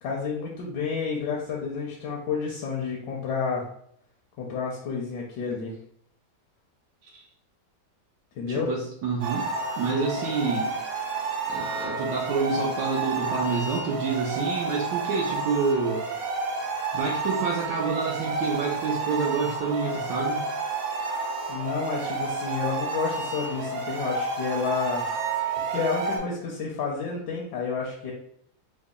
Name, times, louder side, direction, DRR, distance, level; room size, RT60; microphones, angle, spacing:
voice 1, 0.0-3.6 4.4-5.7 8.4-8.7 21.5-25.1 25.6-28.1, left 5 dB, 80° left, -2 dB, 1.2 m, -30 dB
voice 2, 8.5-9.5 9.8-10.7 11.5-16.0 16.9-20.5, right 5 dB, 85° right, -3 dB, 1.3 m, -28 dB
sound 1, 9.2-26.2, right 3 dB, 65° right, 1.2 m, -30 dB
3.8 x 2.1 x 3.6 m, 0.68 s
omnidirectional pair, 1.9 m